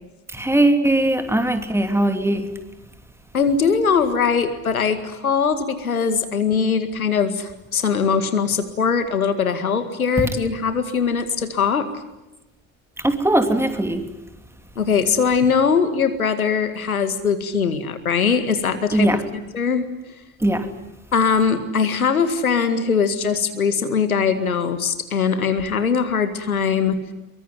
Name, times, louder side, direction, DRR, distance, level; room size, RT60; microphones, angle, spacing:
voice 1, 0.3-2.5 13.0-14.1 18.9-19.3 20.4-20.7, right 1 dB, 5° right, 7 dB, 3.0 m, -20 dB
voice 2, 3.3-11.9 14.8-19.1 19.5-19.8 21.1-27.0, left 6 dB, 85° left, 10 dB, 2.1 m, -21 dB
24.0 x 23.5 x 9.3 m, 0.98 s
figure-of-eight pair, 65°, 42 cm